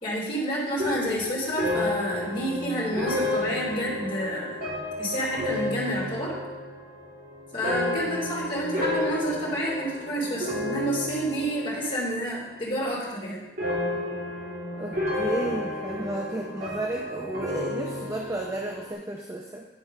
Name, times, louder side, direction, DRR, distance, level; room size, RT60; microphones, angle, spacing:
voice 1, 0.0-4.6 5.0-6.3 7.5-13.4, equal, 30° left, -6 dB, 3.0 m, -29 dB
sound 1, 0.8-12.2 12.5-13.1 13.6-18.9, left 2 dB, 55° right, 2.3 m, -32 dB
voice 2, 14.7-19.7, right 1 dB, 15° right, 0 dB, 0.6 m, -33 dB
10.0 x 4.6 x 5.4 m, 1.0 s
head